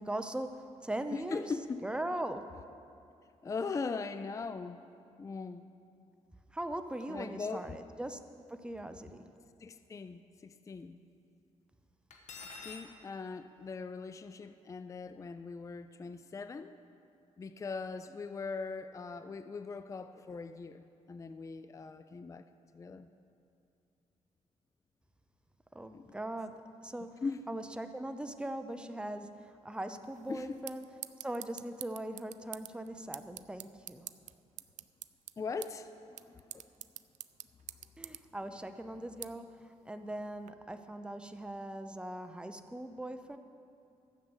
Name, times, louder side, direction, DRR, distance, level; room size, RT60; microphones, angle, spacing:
voice 1, 0.0-1.4 1.8-2.5 6.5-8.2 8.5-9.3 25.7-30.8 31.2-34.1 38.0-43.4, right 1 dB, 10° right, 8 dB, 0.7 m, -40 dB
voice 2, 1.1-1.8 3.4-4.8 5.2-5.7 7.1-7.8 9.6-11.0 12.6-16.7 17.4-22.5 22.7-23.1 25.9-26.2 27.2-27.6 30.3-30.6 35.4-36.7, left 4 dB, 25° left, 11 dB, 0.4 m, -40 dB
Cutlery silverware, 12.1-12.9, left 4 dB, 80° left, 1.4 m, -46 dB
sound 1, 30.0-40.5, right 12 dB, 80° right, 0.4 m, -50 dB
13.0 x 6.7 x 8.0 m, 2.5 s
cardioid pair, 100°, 12 cm